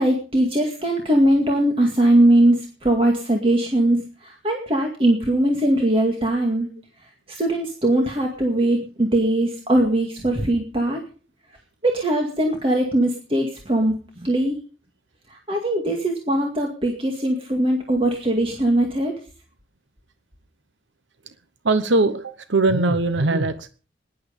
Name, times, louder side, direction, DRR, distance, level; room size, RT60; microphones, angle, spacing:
voice 1, 0.0-6.7 7.3-11.0 11.8-14.6 15.3-19.2, right 1 dB, 30° right, 1 dB, 2.2 m, -20 dB
voice 2, 21.6-23.7, right 2 dB, 80° right, 11 dB, 1.0 m, -20 dB
18.5 x 11.0 x 5.3 m, 0.38 s
head